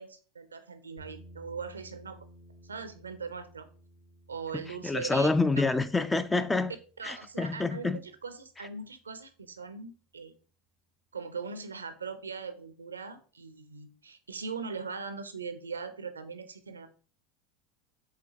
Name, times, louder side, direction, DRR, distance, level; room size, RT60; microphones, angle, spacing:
voice 1, 0.0-2.3 2.6-3.7 4.3-5.3 7.0-10.3 11.1-16.9, right 5 dB, 90° right, 0.5 m, -40 dB
sound 1, 1.0-9.1, right 1 dB, 70° left, 1.5 m, -56 dB
voice 2, 4.5-6.7 7.0-8.0, left 3 dB, 15° left, 0.3 m, -27 dB
4.9 x 3.4 x 2.8 m
hypercardioid pair, 80°, 0 cm